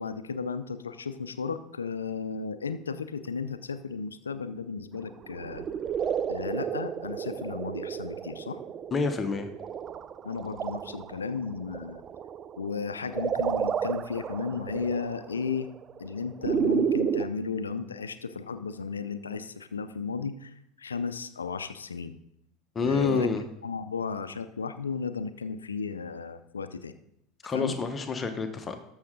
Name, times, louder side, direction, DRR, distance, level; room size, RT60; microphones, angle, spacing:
voice 1, 0.0-5.6 6.3-8.6 10.2-12.0 12.6-15.7 16.0-22.1 22.8-23.3 23.6-27.0 27.5-27.8, left 5 dB, 85° left, 12 dB, 0.5 m, -34 dB
sound 1, 5.2-17.3, right 8 dB, 35° right, 0.4 m, -32 dB
voice 2, 8.9-9.5 22.7-23.4 27.4-28.8, left 4 dB, 25° left, 7 dB, 1.0 m, -28 dB
13.0 x 6.4 x 3.8 m, 0.78 s
figure-of-eight pair, 75°, 0 cm